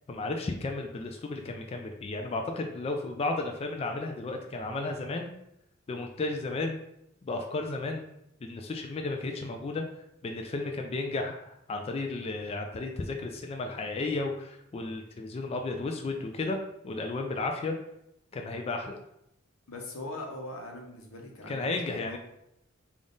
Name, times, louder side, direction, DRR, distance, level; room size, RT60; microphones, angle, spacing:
voice 1, 0.1-5.3 5.9-6.8 7.2-8.0 8.4-9.8 10.2-16.6 16.8-17.7 18.3-19.0 21.5-22.2, left 3 dB, 30° left, 3 dB, 0.3 m, -33 dB
voice 2, 19.7-22.2, left 2 dB, 90° left, 2 dB, 0.8 m, -41 dB
3.5 x 2.4 x 3.8 m, 0.81 s
head